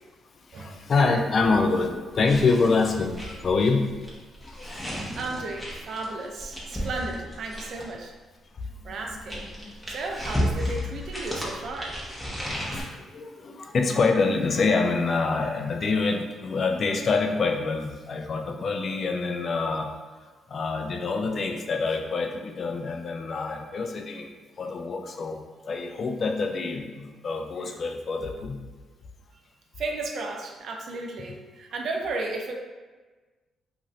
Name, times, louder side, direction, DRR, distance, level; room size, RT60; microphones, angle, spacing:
voice 1, 0.5-3.9 4.5-5.0 8.8-9.7 12.5-19.9 20.5-24.3 24.6-25.4 25.7-28.6, left 4 dB, 45° left, 3 dB, 0.3 m, -26 dB
sound 1, 2.2-8.0 8.8-12.8, equal, ahead, 0.8 m, -33 dB
voice 2, 4.9-8.1 8.8-9.5 9.9-12.0 29.8-32.5, right 3 dB, 65° right, 2 dB, 0.4 m, -34 dB
2.6 x 2.5 x 3.1 m, 1.3 s
cardioid pair, 90°, 0 cm